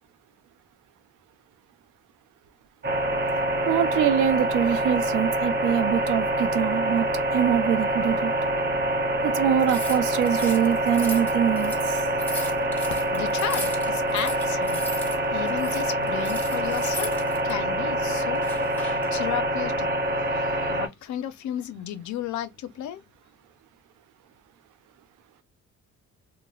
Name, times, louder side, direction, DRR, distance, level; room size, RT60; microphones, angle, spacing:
sound 1, 2.8-20.9, right 1 dB, 35° right, 0.8 m, -26 dB
voice 1, 3.7-8.3 9.2-12.0, right 10 dB, 90° right, 0.5 m, -24 dB
sound 2, 9.6-15.2 15.5-17.5 18.3-19.1, left 1 dB, 5° left, 1.1 m, -38 dB
voice 2, 13.1-14.8 15.3-17.1 17.4-18.4 19.1-19.9 20.3-23.0, left 11 dB, 70° left, 0.5 m, -33 dB
3.1 x 2.1 x 2.3 m
cardioid pair, 90°, 30 cm